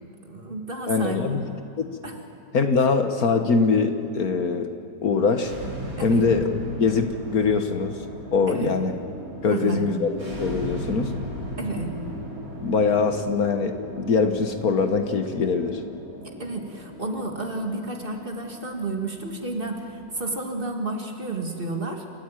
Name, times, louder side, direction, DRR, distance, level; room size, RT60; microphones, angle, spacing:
voice 1, 0.2-1.4 2.0-2.2 6.0-6.3 8.5-8.8 9.5-9.9 11.6-11.9 16.2-22.0, right 2 dB, 30° right, 3 dB, 2.1 m, -31 dB
voice 2, 0.9-1.4 1.8-2.0 2.5-4.7 5.0-5.5 6.0-6.4 6.8-8.0 8.3-8.9 9.4-11.1 12.6-15.8, left 4 dB, 60° left, 7 dB, 1.6 m, -23 dB
sound 1, 5.3-20.2, equal, 80° right, 6.7 m, -37 dB
28.5 x 14.5 x 9.0 m, 2.7 s
omnidirectional pair, 1.8 m